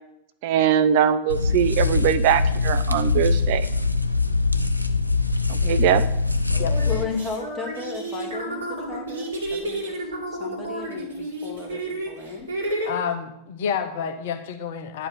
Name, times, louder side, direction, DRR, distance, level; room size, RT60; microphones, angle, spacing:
voice 1, 0.4-3.7 5.5-6.0, right 9 dB, 50° right, 13 dB, 0.5 m, -21 dB
sound 1, 1.3-7.0, left 3 dB, 90° left, 0.5 m, -22 dB
sound 2, 5.7-5.8 6.5-12.9, right 1 dB, 65° right, 2.2 m, -31 dB
voice 2, 6.8-8.6 8.9-12.5, left 5 dB, 15° left, 0 dB, 2.1 m, -35 dB
voice 3, 12.8-15.1, left 7 dB, 55° left, 7 dB, 0.8 m, -29 dB
9.6 x 5.0 x 6.7 m, 0.82 s
figure-of-eight pair, 90°, 0 cm